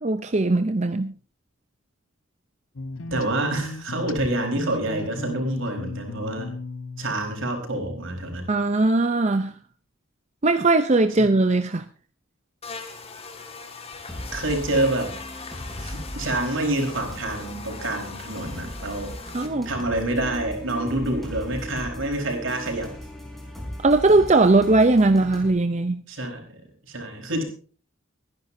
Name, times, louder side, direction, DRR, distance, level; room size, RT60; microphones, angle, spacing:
voice 1, 0.0-1.1 8.5-9.5 10.4-11.8 19.3-19.7 23.8-26.0, right 2 dB, 35° right, 0.6 m, -19 dB
sound 1, 2.8-7.9, left 2 dB, 75° left, 1.1 m, -37 dB
voice 2, 3.1-6.5 7.0-8.5 14.3-15.2 15.8-19.2 19.6-22.9 26.1-26.6 26.8-27.4, right 1 dB, 70° right, 4.5 m, -27 dB
Buzz, 12.6-19.5, left 4 dB, 30° left, 1.9 m, -40 dB
sound 2, 14.1-25.5, left 1 dB, ahead, 4.0 m, -38 dB
24.5 x 10.5 x 2.7 m
head